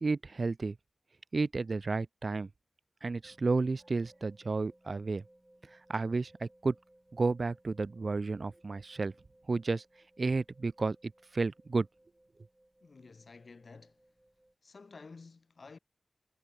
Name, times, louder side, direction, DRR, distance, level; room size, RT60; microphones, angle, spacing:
voice 1, 0.0-0.8 1.3-2.5 3.0-5.2 5.9-6.7 7.1-9.1 9.5-9.8 10.2-11.9, right 3 dB, 60° right, 0.5 m, -32 dB
sound 1, 3.2-14.5, right 1 dB, 15° right, 6.4 m, -64 dB
voice 2, 12.8-14.0 14.6-15.8, left 4 dB, 65° left, 1.8 m, -52 dB
cardioid pair, 50°, 0 cm